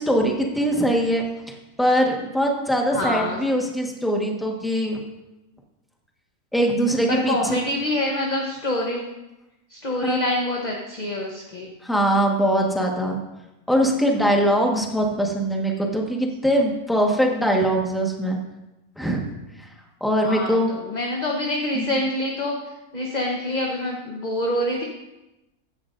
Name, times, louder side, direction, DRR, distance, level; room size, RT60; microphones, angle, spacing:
voice 1, 0.0-5.0 6.5-7.6 10.0-10.2 11.8-13.2 13.7-18.4 19.0-19.3 19.6-19.7 20.0-20.7 21.7-21.9, equal, ahead, 0 dB, 1.3 m, -22 dB
voice 2, 2.9-3.4 7.1-9.0 9.7-11.7 20.2-22.5 22.9-24.8, left 1 dB, 30° left, -1 dB, 1.1 m, -26 dB
15.0 x 11.0 x 2.6 m, 0.98 s
omnidirectional pair, 1.5 m